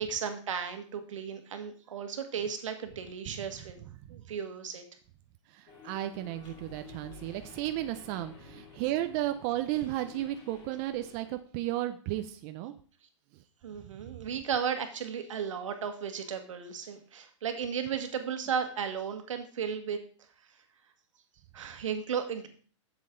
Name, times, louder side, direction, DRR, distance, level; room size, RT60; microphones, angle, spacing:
voice 1, 0.0-3.8 4.1-4.8 13.6-20.0 21.5-22.5, right 7 dB, 80° right, 6 dB, 1.6 m, -35 dB
voice 2, 5.5-12.7 13.3-13.4, right 14 dB, 30° right, 8 dB, 0.5 m, -34 dB
sound 1, 5.7-11.4, left 5 dB, 30° left, 2.9 m, -52 dB
7.6 x 7.4 x 3.8 m, 0.42 s
hypercardioid pair, 150°, 16 cm